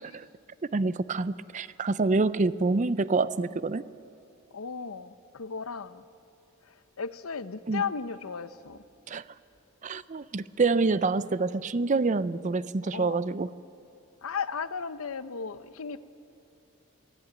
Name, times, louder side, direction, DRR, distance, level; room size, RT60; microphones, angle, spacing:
voice 1, 0.7-3.9 7.7-7.8 9.1-9.2 9.8-13.5, right 3 dB, 35° right, 17 dB, 0.4 m, -27 dB
voice 2, 4.5-6.0 7.0-8.8 12.9-13.2 14.2-16.0, left 5 dB, 80° left, 14 dB, 0.7 m, -35 dB
23.0 x 15.5 x 8.7 m, 2.7 s
head